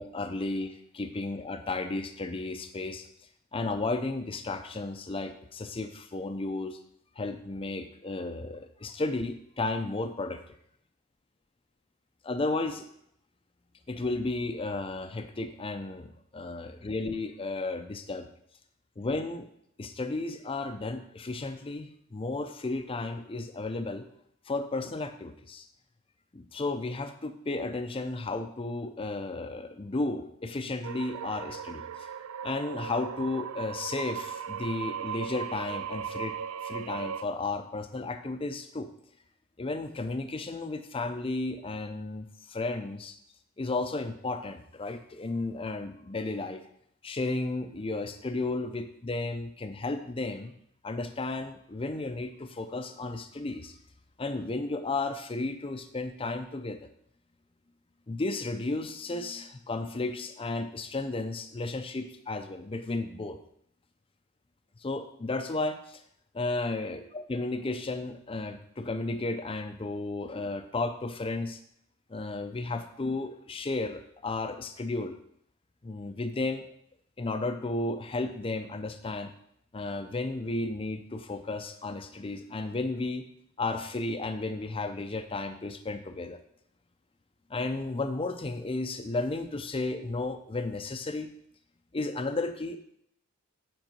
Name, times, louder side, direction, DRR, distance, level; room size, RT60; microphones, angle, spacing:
voice 1, 0.0-3.1 3.5-6.8 7.2-10.4 12.2-12.9 13.9-18.3 19.0-19.5 19.8-24.1 24.5-25.7 26.3-32.1 32.4-36.4 36.6-38.9 39.6-43.2 43.6-46.6 47.0-50.5 50.8-53.8 54.2-56.8 58.1-63.4 64.8-66.0 66.3-66.9 67.3-71.6 72.1-75.2 75.8-76.6 77.2-79.3 79.7-83.2 83.6-86.4 87.5-91.3 91.9-92.8, left 2 dB, 25° left, 7 dB, 0.5 m, -33 dB
sound 1, 30.8-37.2, right 8 dB, 85° right, 0.4 m, -37 dB
8.9 x 5.3 x 5.3 m, 0.70 s
head